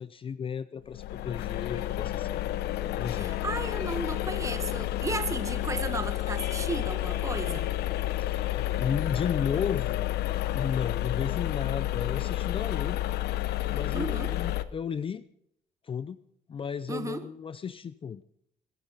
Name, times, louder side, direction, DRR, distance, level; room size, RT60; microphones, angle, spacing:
voice 1, 0.0-2.4 3.0-3.4 8.2-10.1 10.5-13.0 13.7-15.2 15.8-16.2 16.5-18.2, left 7 dB, 30° left, 15 dB, 0.6 m, -34 dB
sound 1, 0.9-14.6, left 15 dB, 75° left, 0.8 m, -30 dB
voice 2, 3.1-7.7 13.9-14.3 16.9-17.2, right 3 dB, 20° right, 9 dB, 1.6 m, -34 dB
22.0 x 10.0 x 5.3 m, 0.72 s
cardioid pair, 110°, 17 cm